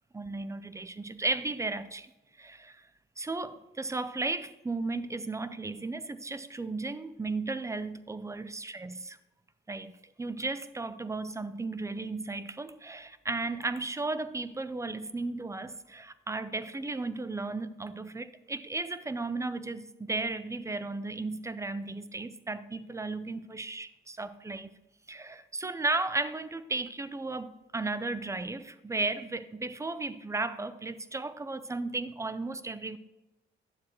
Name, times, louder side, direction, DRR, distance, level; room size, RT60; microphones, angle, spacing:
voice 1, 0.1-2.1 2.4-2.8 3.2-9.2 9.7-9.9 10.2-24.7 25.1-33.0, right 3 dB, 15° right, 14 dB, 0.5 m, -35 dB
9.9 x 7.4 x 3.1 m, 1.0 s
cardioid pair, 90°, 20 cm